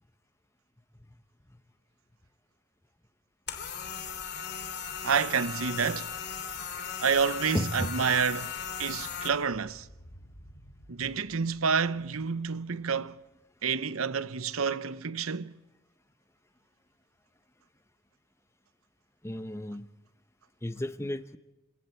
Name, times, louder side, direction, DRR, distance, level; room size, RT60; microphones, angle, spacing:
sound 1, 3.5-9.3, left 7 dB, 50° left, 3.1 m, -37 dB
voice 1, 5.0-6.1 7.0-8.5 8.8-9.9 10.9-13.2 13.6-15.5, right 6 dB, 85° right, 0.8 m, -29 dB
sound 2, 6.9-14.3 14.6-14.7, equal, 85° left, 7.0 m, -58 dB
voice 2, 7.5-8.0 19.2-19.9 20.6-21.4, left 1 dB, 15° left, 0.8 m, -33 dB
29.0 x 26.0 x 4.5 m
head